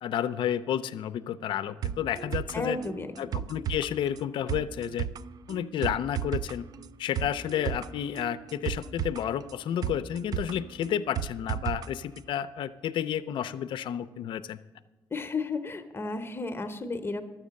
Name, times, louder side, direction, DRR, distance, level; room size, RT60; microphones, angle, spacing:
voice 1, 0.0-2.8 3.2-5.1 5.5-6.7 7.0-14.6, left 10 dB, 75° left, 13 dB, 0.5 m, -31 dB
sound 1, 1.8-11.9 12.2-12.3, right 10 dB, 50° right, 0.3 m, -35 dB
voice 2, 2.5-3.3 15.1-17.2, left 3 dB, 30° left, 7 dB, 0.8 m, -33 dB
12.0 x 7.5 x 6.4 m, 1.1 s
cardioid pair, 85°, 8 cm